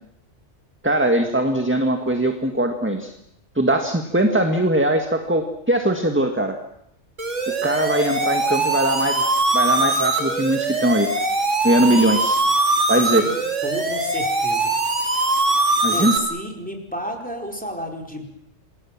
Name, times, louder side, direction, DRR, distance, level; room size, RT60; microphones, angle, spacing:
voice 1, 0.8-3.1 3.6-6.6 7.6-11.1 11.6-12.4 12.9-13.2 15.8-16.1, right 1 dB, 10° right, 5 dB, 1.7 m, -20 dB
sound 1, 7.2-16.2, right 2 dB, 70° right, 3.3 m, -22 dB
voice 2, 13.2-14.7 15.9-18.3, equal, 5° left, 1 dB, 4.6 m, -32 dB
28.0 x 21.5 x 7.4 m, 0.77 s
omnidirectional pair, 1.3 m